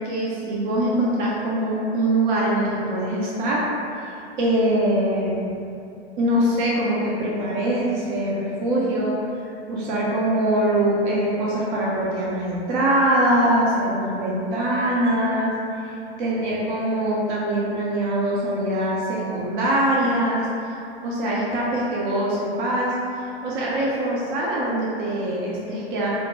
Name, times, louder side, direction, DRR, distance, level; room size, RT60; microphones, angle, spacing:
voice 1, 0.0-3.7 4.4-5.5 6.2-9.2 9.7-15.5 16.2-20.5 21.0-22.9 23.4-26.1, right 1 dB, 45° right, -5 dB, 0.5 m, -23 dB
2.4 x 2.1 x 2.9 m, 2.6 s
figure-of-eight pair, 95°, 33 cm